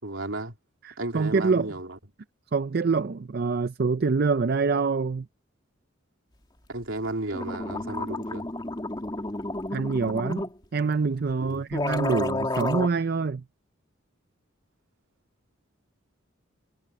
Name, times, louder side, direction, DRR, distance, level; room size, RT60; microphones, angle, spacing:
voice 1, 0.0-0.5 1.0-2.0 6.7-8.5 11.4-11.6, right 2 dB, 70° right, 3.5 m, -33 dB
voice 2, 0.8-1.7 2.5-5.3 9.7-10.5 10.7-13.4, right 4 dB, 50° right, 0.5 m, -25 dB
sound 1, 7.0-7.1 7.3-10.5 11.3-11.4 11.7-12.9, left 2 dB, 20° left, 2.1 m, -31 dB
head